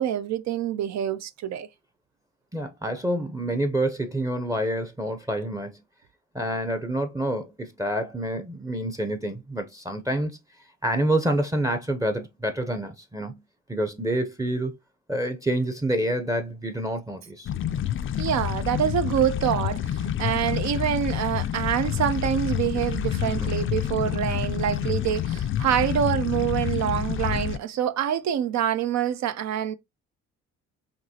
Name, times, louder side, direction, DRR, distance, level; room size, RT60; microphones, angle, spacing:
voice 1, 0.0-1.7 18.2-29.7, right 10 dB, 65° right, 0.5 m, -26 dB
voice 2, 2.5-5.8 6.3-10.4 10.8-13.4 13.7-14.7 15.1-17.5 23.3-23.6, right 1 dB, 10° right, 0.6 m, -27 dB
sound 1, 17.5-27.6, left 10 dB, 45° left, 0.4 m, -28 dB
5.2 x 3.0 x 2.8 m
cardioid pair, 90°, 30 cm